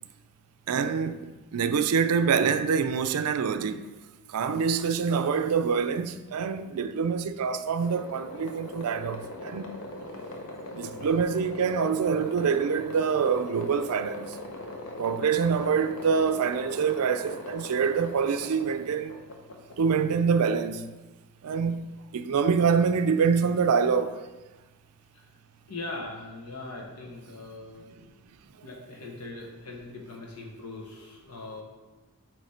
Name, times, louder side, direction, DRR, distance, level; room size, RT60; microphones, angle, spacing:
voice 1, 0.7-3.9 4.3-9.8 10.7-14.4 15.0-19.2 19.8-20.9 21.4-21.9 22.1-24.3, right 6 dB, 75° right, 0.4 m, -26 dB
sound 1, 7.8-20.4, left 1 dB, 65° left, 0.9 m, -40 dB
voice 2, 25.7-28.0 28.6-31.6, left 2 dB, 85° left, 1.3 m, -41 dB
8.1 x 3.2 x 4.3 m
head